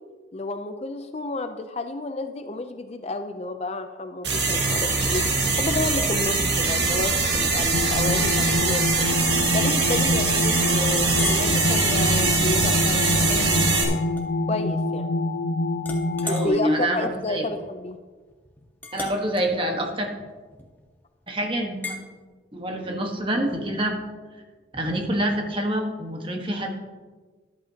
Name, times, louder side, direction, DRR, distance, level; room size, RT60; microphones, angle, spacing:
voice 1, 0.3-8.8 9.5-15.1 16.2-18.0, left 2 dB, 35° left, 8 dB, 0.5 m, -31 dB
sound 1, 4.2-13.8, right 3 dB, 60° right, 2.1 m, -22 dB
sound 2, 7.7-16.5, left 2 dB, 65° left, 0.8 m, -26 dB
Chink clink, 8.2-8.7 9.2-9.4 9.9-10.0 10.9-11.5 12.1-12.3 13.8-14.8 15.1-15.5 15.8-20.9 21.8-22.0, left 3 dB, 10° left, 1.1 m, -38 dB
voice 2, 16.2-17.4 18.9-20.1 21.3-22.0 22.5-24.0 24.7-26.7, right 1 dB, 25° right, 2 dB, 1.3 m, -26 dB
14.0 x 11.0 x 2.9 m, 1.4 s
head